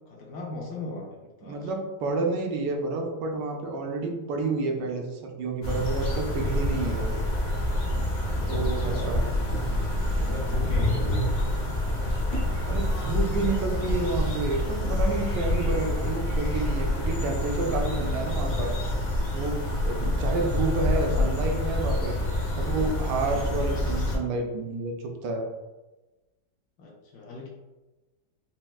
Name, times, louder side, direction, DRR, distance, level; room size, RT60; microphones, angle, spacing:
voice 1, 0.0-1.7 8.5-9.1 10.2-11.3 20.0-20.8 23.3-23.7 26.8-27.5, left 3 dB, 75° left, -2 dB, 1.2 m, -39 dB
voice 2, 1.4-7.2 8.5-9.2 12.7-18.7 19.3-22.2 22.5-25.5, right 3 dB, 80° right, 2 dB, 1.2 m, -30 dB
sound 1, 5.6-24.2, left 1 dB, 55° left, 1.0 m, -27 dB
4.2 x 2.1 x 2.3 m, 1.1 s
omnidirectional pair, 1.8 m